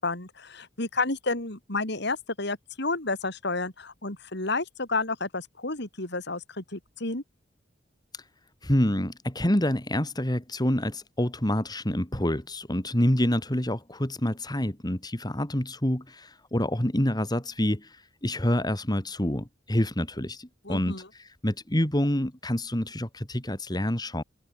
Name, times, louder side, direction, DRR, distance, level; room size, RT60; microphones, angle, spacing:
voice 1, 0.0-7.2 20.6-21.1, left 3 dB, 60° left, 4.9 m, -31 dB
voice 2, 8.6-24.2, left 1 dB, 20° left, 2.9 m, -27 dB
head